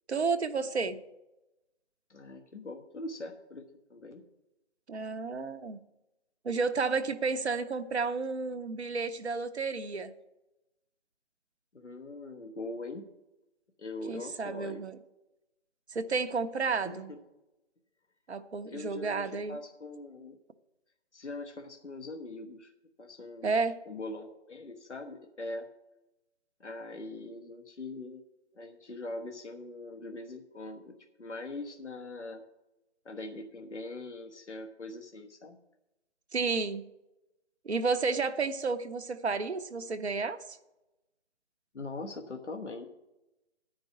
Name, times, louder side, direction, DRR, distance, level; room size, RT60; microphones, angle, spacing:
voice 1, 0.1-1.0 4.9-5.8 6.4-10.1 14.1-15.0 15.9-17.1 18.3-19.6 23.4-23.8 36.3-36.8 37.6-40.6, right 4 dB, 65° right, 9 dB, 0.9 m, -31 dB
voice 2, 2.1-4.2 11.7-13.1 13.8-14.8 16.8-17.2 18.7-20.4 21.1-22.7 23.0-23.5 23.9-25.7 26.6-28.2 28.5-32.4 33.0-35.6 41.7-42.9, left 2 dB, 80° left, 3 dB, 1.2 m, -42 dB
10.0 x 5.3 x 8.2 m, 0.96 s
figure-of-eight pair, 145°, 35 cm